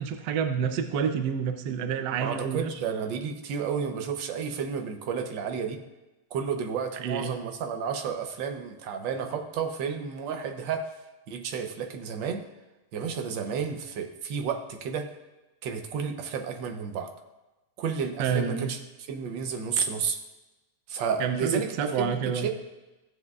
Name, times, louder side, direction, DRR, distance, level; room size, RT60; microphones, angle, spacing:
voice 1, 0.0-2.7 7.0-7.4 18.2-18.7 21.2-22.5, right 7 dB, 70° right, 7 dB, 1.2 m, -28 dB
voice 2, 2.2-5.8 6.3-10.9 11.3-12.4 12.9-15.1 15.6-17.1 17.8-18.8 19.1-20.2 20.9-22.5, right 6 dB, 90° right, 5 dB, 1.5 m, -31 dB
14.5 x 7.4 x 2.4 m, 1.1 s
omnidirectional pair, 1.9 m